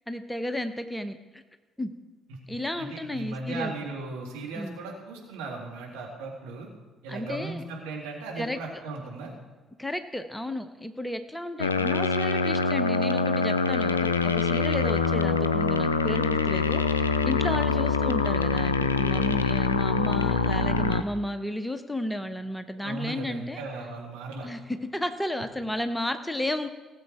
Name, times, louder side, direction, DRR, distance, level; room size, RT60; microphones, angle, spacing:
voice 1, 0.1-1.4 1.8-1.9 2.5-3.7 4.6-4.8 7.1-7.6 8.4-8.6 9.8-16.8 17.2-23.6 24.4-26.7, left 1 dB, 5° left, 9 dB, 0.9 m, -33 dB
voice 2, 2.3-6.7 7.0-9.3 17.3-17.6 22.8-24.5, right 3 dB, 70° right, -2 dB, 2.4 m, -37 dB
sound 1, 11.6-21.0, left 5 dB, 80° left, 0.4 m, -24 dB
18.0 x 7.5 x 4.7 m, 1.3 s
figure-of-eight pair, 45°, 0 cm